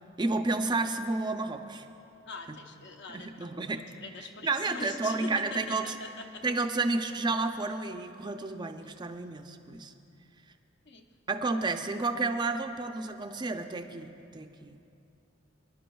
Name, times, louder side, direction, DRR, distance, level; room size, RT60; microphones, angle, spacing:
voice 1, 0.2-1.9 3.1-3.8 4.4-5.9 6.4-9.9 11.3-14.8, right 3 dB, 25° right, 6 dB, 0.4 m, -31 dB
voice 2, 2.2-3.7 4.0-6.4 10.9-11.0, left 3 dB, 65° left, 4 dB, 0.8 m, -43 dB
23.0 x 10.5 x 2.3 m, 2.7 s
head